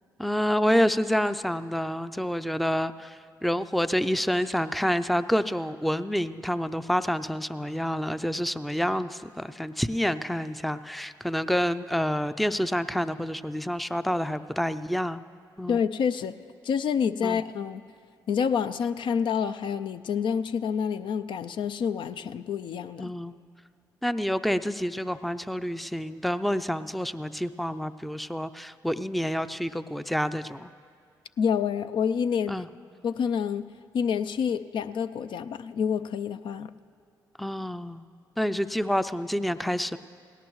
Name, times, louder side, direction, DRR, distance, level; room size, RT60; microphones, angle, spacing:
voice 1, 0.2-15.2 15.6-15.8 17.2-17.4 23.0-23.4 24.0-30.7 32.5-32.7 37.4-38.0 38.4-40.0, equal, ahead, 13 dB, 0.4 m, -28 dB
voice 2, 15.7-16.3 16.6-17.8 18.3-23.1 31.4-32.5 33.0-33.6 33.9-36.7, left 7 dB, 60° left, 12 dB, 0.4 m, -28 dB
18.0 x 17.5 x 3.1 m, 2.2 s
hypercardioid pair, 50°, 9 cm